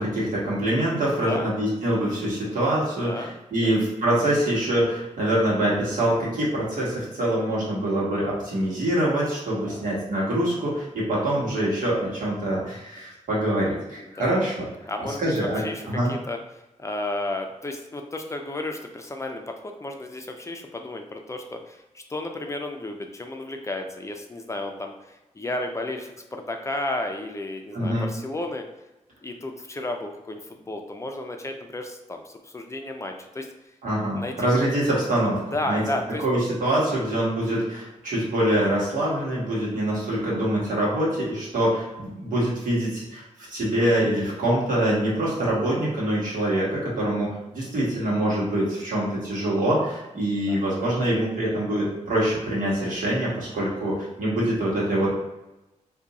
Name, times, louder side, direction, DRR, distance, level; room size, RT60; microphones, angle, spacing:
voice 1, 0.0-14.7 15.0-15.6 15.9-16.1 27.7-28.1 33.8-35.4 35.6-35.8 36.2-43.2 43.5-55.1, right 1 dB, 90° right, -6 dB, 1.4 m, -24 dB
voice 2, 2.8-3.4 3.6-3.8 9.7-9.9 14.0-14.5 14.9-28.7 29.2-33.7 34.1-34.5 35.5-36.2 48.1-48.2 50.4-50.6, left 2 dB, 20° left, 4 dB, 0.4 m, -33 dB
2.6 x 2.5 x 4.0 m, 0.98 s
wide cardioid pair, 120°, 13 cm